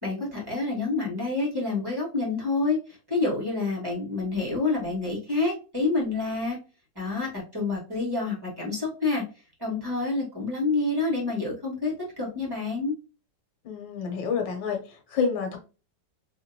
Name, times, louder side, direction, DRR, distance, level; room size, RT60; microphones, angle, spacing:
voice 1, 0.0-2.8 3.1-6.6 7.0-9.2 9.6-12.9, left 3 dB, 10° right, 2.0 m, -28 dB
voice 2, 13.6-15.6, left 5 dB, 85° left, 1.9 m, -29 dB
3.7 x 3.4 x 2.8 m
omnidirectional pair, 2.0 m